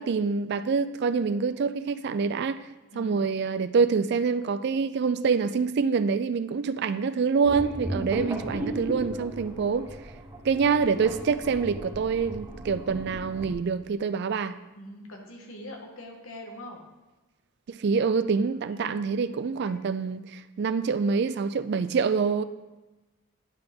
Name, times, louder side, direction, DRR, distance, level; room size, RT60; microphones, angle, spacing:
voice 1, 0.0-2.6 3.0-9.9 10.4-14.6 17.7-22.4, right 5 dB, 50° right, 13 dB, 0.3 m, -26 dB
voice 2, 2.9-3.2 14.7-16.8 18.7-19.1 19.6-19.7, left 1 dB, 70° left, 2 dB, 1.3 m, -44 dB
sound 1, 7.4-13.5, right 1 dB, 15° right, 0.9 m, -36 dB
10.5 x 4.8 x 3.7 m, 1.1 s
head